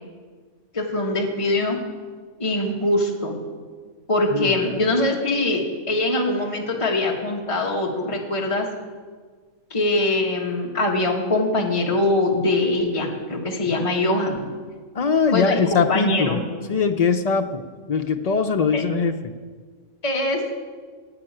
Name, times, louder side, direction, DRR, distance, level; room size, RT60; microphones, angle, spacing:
voice 1, 0.7-1.8 2.4-3.4 4.1-8.7 9.7-14.5 15.3-16.4 18.7-18.8 20.0-20.5, left 2 dB, 25° left, 0 dB, 1.6 m, -23 dB
voice 2, 14.9-16.4 16.7-19.2, left 5 dB, 85° left, 6 dB, 0.3 m, -21 dB
12.0 x 8.7 x 8.8 m, 1.5 s
omnidirectional pair, 1.5 m